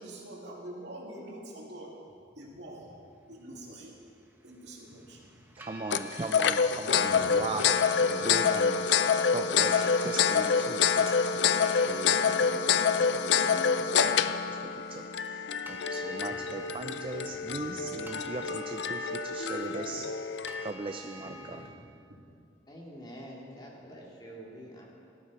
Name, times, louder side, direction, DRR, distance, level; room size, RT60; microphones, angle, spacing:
voice 1, 0.0-1.9 2.3-4.0 4.4-5.6 7.0-7.6 7.9-8.2 14.8-15.1 16.2-18.1 19.8-19.9 21.2-21.8 22.1-22.2, right 1 dB, 70° right, -2 dB, 2.7 m, -47 dB
sound 1, 3.7-21.7, equal, 10° right, 1.0 m, -50 dB
voice 2, 5.6-20.0 20.6-21.6, right 3 dB, 30° right, 5 dB, 0.5 m, -39 dB
sound 2, 5.9-20.7, left 6 dB, 75° left, 0.5 m, -27 dB
voice 3, 22.7-24.9, equal, 25° left, -3 dB, 2.3 m, -46 dB
18.0 x 12.5 x 4.2 m, 2.4 s
head